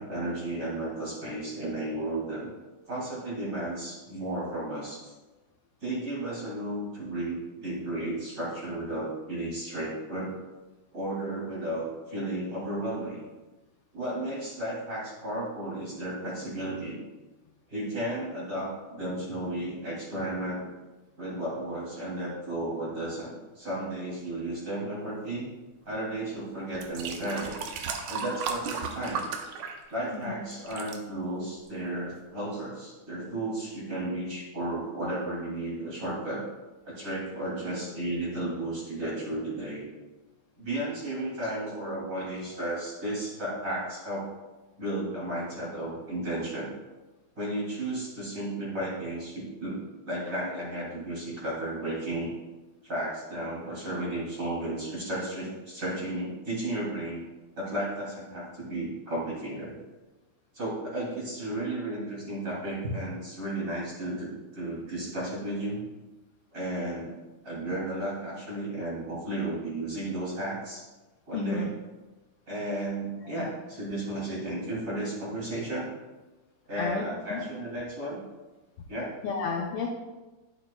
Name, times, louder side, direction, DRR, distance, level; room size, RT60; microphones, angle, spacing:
voice 1, 0.0-2.5 2.9-5.1 5.8-10.4 10.9-13.2 13.9-17.0 17.7-20.6 21.2-25.5 25.8-27.6 28.1-29.3 29.9-36.4 36.8-39.9 40.6-44.3 44.8-46.7 47.3-49.8 50.1-52.3 52.8-57.2 57.6-59.8 60.5-65.8 66.5-67.2 67.4-70.9 71.3-71.7 72.5-75.9 76.7-78.2 78.9-79.1, right 1 dB, 30° right, -5 dB, 2.9 m, -33 dB
sound 1, 26.1-26.2 26.7-30.2 30.5-31.0 31.7-31.8, right 5 dB, 75° right, 2.1 m, -35 dB
voice 2, 71.3-71.7 73.2-73.5 76.8-77.0 77.3-77.4 79.2-79.9, left 5 dB, 75° left, 0 dB, 1.3 m, -32 dB
11.5 x 7.6 x 2.2 m, 1.2 s
omnidirectional pair, 3.4 m